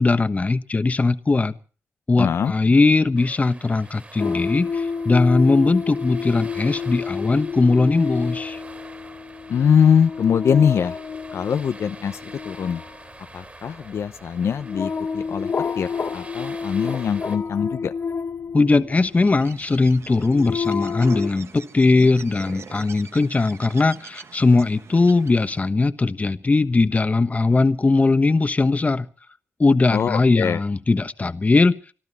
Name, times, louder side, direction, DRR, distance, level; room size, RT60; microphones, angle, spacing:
voice 1, 0.0-1.6 2.1-8.6 18.5-29.1 29.6-31.8, left 3 dB, 30° left, 11 dB, 1.2 m, -19 dB
voice 2, 2.2-2.5 9.5-11.0 11.3-12.8 13.3-17.9 29.9-30.6, left 7 dB, 75° left, 10 dB, 0.7 m, -22 dB
sound 1, 3.1-17.4, right 2 dB, 30° right, 3.3 m, -45 dB
sound 2, 4.2-19.3 20.0-21.3, left 5 dB, 50° left, 0.9 m, -29 dB
Bird, 19.1-25.7, right 6 dB, 65° right, 1.2 m, -43 dB
25.5 x 13.5 x 4.2 m, 0.41 s
cardioid pair, 75°, 5 cm